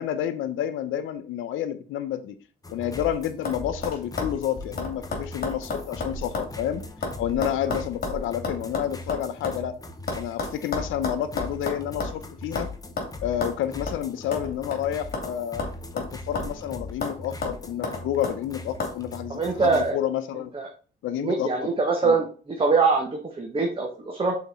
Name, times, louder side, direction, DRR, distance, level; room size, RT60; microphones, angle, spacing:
voice 1, 0.0-2.4 2.7-6.8 7.2-9.8 10.1-12.7 13.2-15.7 15.9-20.5 21.0-21.7 22.0-22.2, left 10 dB, 85° left, 0.8 m, -29 dB
sound 1, 2.6-19.9, left 2 dB, 20° left, 1.0 m, -40 dB
sound 2, 2.7-3.1 3.4-3.6 3.8-6.5 6.8-9.6 10.1-12.2 12.6-12.7 13.0-13.1 13.4-13.6 13.9-14.0 14.3-15.3 15.6-16.6 17.0-17.2 17.4-18.4 18.8-18.9, left 3 dB, 50° left, 2.6 m, -31 dB
voice 2, 19.3-20.0 20.5-20.6 21.2-24.4, right 4 dB, 25° right, 1.3 m, -23 dB
5.9 x 4.2 x 4.1 m
cardioid pair, 90°, 20 cm